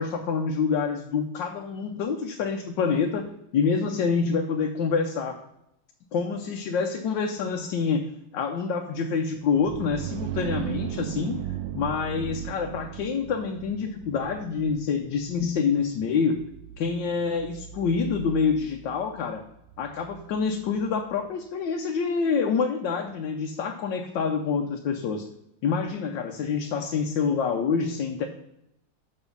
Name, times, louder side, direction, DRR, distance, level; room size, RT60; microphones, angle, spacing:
voice 1, 0.0-5.4 6.1-8.1 8.3-11.4 11.7-16.4 16.8-19.4 19.8-25.3 25.6-28.3, left 5 dB, 80° left, 3 dB, 1.4 m, -27 dB
sound 1, 9.4-21.0, right 11 dB, 85° right, 1.4 m, -38 dB
7.0 x 6.0 x 5.3 m, 0.82 s
omnidirectional pair, 2.0 m